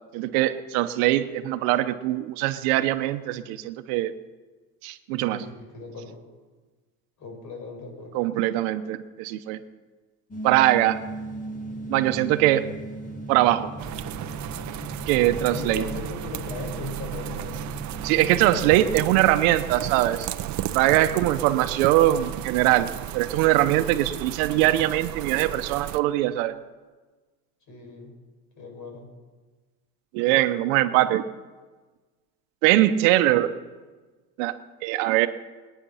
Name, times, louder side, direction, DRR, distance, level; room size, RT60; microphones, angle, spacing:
voice 1, 0.1-4.1 4.8-5.4 8.1-9.6 10.4-11.0 11.9-12.7 13.3-13.7 15.1-15.8 18.0-20.3 20.7-22.9 23.1-26.5 30.1-31.2 32.6-33.5 34.4-34.6 34.8-35.3, right 15 dB, 80° right, 10 dB, 1.1 m, -22 dB
voice 2, 5.3-6.2 7.2-8.2 15.5-17.7 18.4-19.1 20.9-21.3 27.7-28.1 28.6-29.1, left 3 dB, 50° left, 3 dB, 5.4 m, -38 dB
sound 1, 10.3-18.5, right 1 dB, 20° left, 2.4 m, -37 dB
sound 2, 13.8-26.0, right 13 dB, 45° right, 0.8 m, -34 dB
22.5 x 9.6 x 5.7 m, 1.3 s
supercardioid pair, 110°, 39 cm